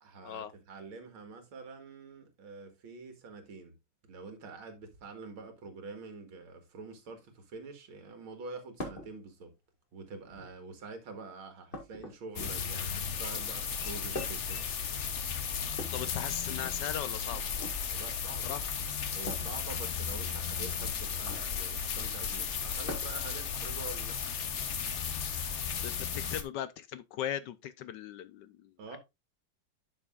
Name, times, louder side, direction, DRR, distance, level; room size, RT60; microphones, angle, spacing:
voice 1, 0.0-3.8 4.1-9.5 9.9-14.7 17.9-18.6 19.1-24.2 28.8-29.0, right 4 dB, 75° right, 2.5 m, -46 dB
sound 1, 8.8-9.1 10.2-10.7 11.7-12.8 14.1-14.6 15.7-16.8 17.5-17.8 19.2-19.6 21.1-21.5 22.9-23.3 24.7-24.8 26.1-26.2, left 1 dB, 25° left, 1.8 m, -43 dB
sound 2, 12.3-26.4, left 7 dB, 55° left, 0.8 m, -35 dB
voice 2, 15.9-17.5 18.4-18.6 25.8-29.0, left 10 dB, 75° left, 1.0 m, -38 dB
11.0 x 6.1 x 2.4 m
omnidirectional pair, 2.3 m